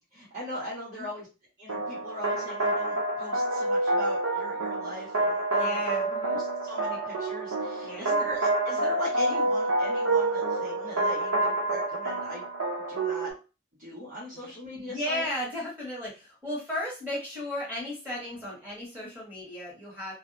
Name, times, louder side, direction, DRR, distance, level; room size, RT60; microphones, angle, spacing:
voice 1, 0.1-1.3 1.6-5.8 6.6-12.4 12.9-13.3 13.8-15.3, equal, 40° right, -8 dB, 1.2 m, -39 dB
sound 1, 1.7-13.3, right 2 dB, 75° right, 0.7 m, -28 dB
voice 2, 5.5-6.4 7.8-8.3 14.3-14.5 14.9-20.1, left 1 dB, 10° right, -6 dB, 1.3 m, -35 dB
2.6 x 2.1 x 2.6 m, 0.32 s
head